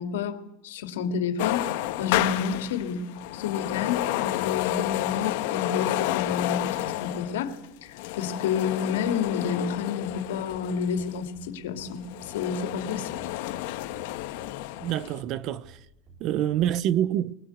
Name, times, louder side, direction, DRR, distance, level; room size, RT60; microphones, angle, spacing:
voice 1, 0.0-1.6 2.0-3.1 3.3-7.6 8.2-13.1, left 6 dB, 90° left, 2.8 m, -30 dB
sound 1, 1.4-11.2 11.8-15.2, left 16 dB, 60° left, 1.7 m, -30 dB
sound 2, 10.1-10.2 10.5-10.6 10.9-11.1 11.3-11.5 11.8-11.9 12.2-12.3 12.6-12.8 13.1-13.6 13.9-14.1 14.3-14.5 14.8-14.9 15.2-15.3 15.6-15.8 16.1-16.2 16.5-16.7, right 4 dB, 20° right, 5.0 m, -51 dB
voice 2, 14.8-15.6 16.2-17.3, right 11 dB, 40° right, 0.8 m, -26 dB
21.5 x 21.0 x 8.2 m
supercardioid pair, 155°, 0 cm